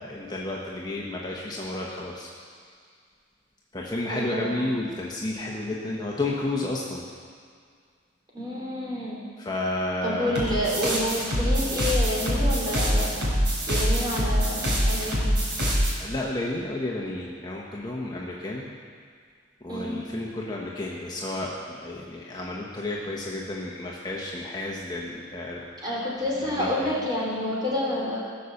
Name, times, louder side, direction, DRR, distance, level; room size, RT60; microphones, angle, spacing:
voice 1, 0.0-2.3 3.7-7.0 9.4-10.4 16.0-18.7 19.6-25.9 26.4-26.9, left 2 dB, 25° left, -3 dB, 1.2 m, -31 dB
voice 2, 4.1-4.7 8.3-9.2 10.0-13.1 13.7-15.4 19.7-20.0 25.8-28.2, left 1 dB, 25° right, -5 dB, 3.4 m, -29 dB
sound 1, 10.3-15.9, equal, 70° right, 3.9 m, -24 dB
17.0 x 6.6 x 7.1 m, 2.1 s
head